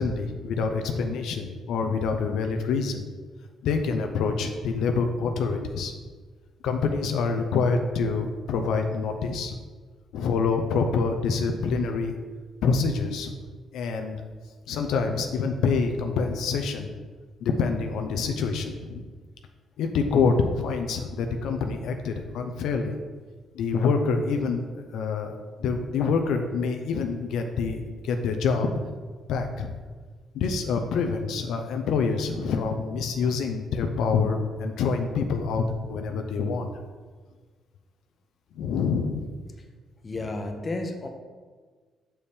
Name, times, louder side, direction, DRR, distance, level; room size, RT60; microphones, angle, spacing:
voice 1, 0.0-3.0 3.6-5.9 6.6-9.5 10.1-12.1 12.6-13.3 13.7-14.2 14.7-16.9 17.4-19.0 19.8-23.0 23.5-28.7 29.3-29.7 30.3-36.7 38.6-39.3, left 5 dB, 80° left, 5 dB, 0.5 m, -26 dB
voice 2, 40.0-41.1, left 2 dB, 30° left, 4 dB, 0.8 m, -32 dB
6.9 x 4.3 x 3.4 m, 1.5 s
cardioid pair, 90°, 0 cm